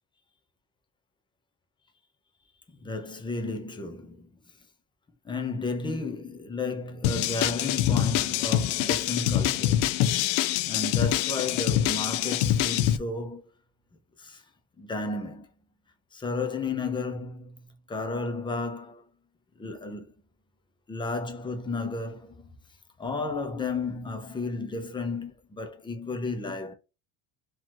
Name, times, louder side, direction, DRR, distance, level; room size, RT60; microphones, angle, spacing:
voice 1, 2.8-4.3 5.2-10.1 10.7-13.4 14.2-14.4 14.8-15.5 16.1-19.0 19.6-20.1 20.9-22.5 23.0-26.7, left 3 dB, 10° left, 0.6 m, -33 dB
sound 1, 7.0-13.0, left 12 dB, 90° left, 0.6 m, -25 dB
3.9 x 3.0 x 3.0 m
cardioid pair, 160°, 40 cm